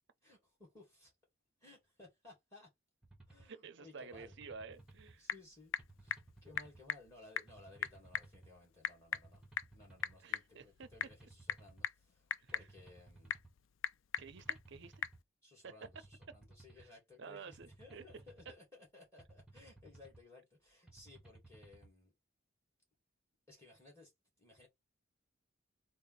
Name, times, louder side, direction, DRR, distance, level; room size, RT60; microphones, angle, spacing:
voice 1, 0.2-1.1 1.6-2.7 3.3-4.4 5.2-5.7 6.0-9.4 9.7-13.4 15.4-22.1 23.5-24.1 24.4-24.7, left 2 dB, 15° left, 2.3 m, -59 dB
sound 1, 3.0-3.5 4.1-5.2 5.8-6.8 7.5-8.5 9.1-10.2 10.8-11.9 12.5-13.5 14.2-15.2 15.8-16.9 17.5-18.6 19.2-20.2 20.9-21.9, right 2 dB, 5° right, 1.1 m, -59 dB
voice 2, 3.4-5.3 10.2-10.9 12.4-12.7 14.2-15.0 15.6-15.7 16.8-16.9 17.2-18.0, right 5 dB, 60° right, 0.6 m, -51 dB
Typing / Telephone, 4.7-15.2, left 9 dB, 65° left, 0.3 m, -43 dB
4.1 x 2.1 x 4.0 m
head